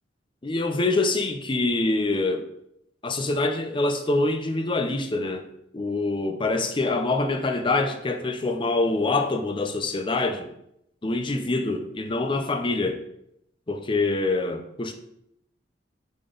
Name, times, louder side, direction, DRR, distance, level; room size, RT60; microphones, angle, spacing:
voice 1, 0.4-2.5 3.0-5.5 5.7-10.5 11.0-13.0 13.7-14.9, left 2 dB, 30° left, 0.5 m, -25 dB
6.7 x 3.8 x 3.9 m
head